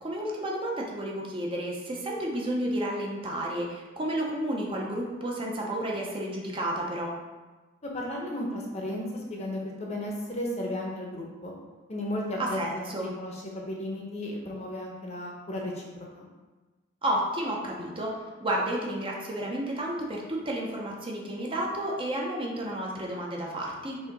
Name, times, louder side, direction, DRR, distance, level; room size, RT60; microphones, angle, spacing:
voice 1, 0.0-7.1 12.4-13.1 17.0-18.1 18.4-24.0, right 1 dB, 25° right, -2 dB, 0.6 m, -31 dB
voice 2, 7.8-11.5 11.9-16.3, left 1 dB, 35° left, -1 dB, 0.8 m, -34 dB
4.9 x 2.7 x 3.9 m, 1.2 s
head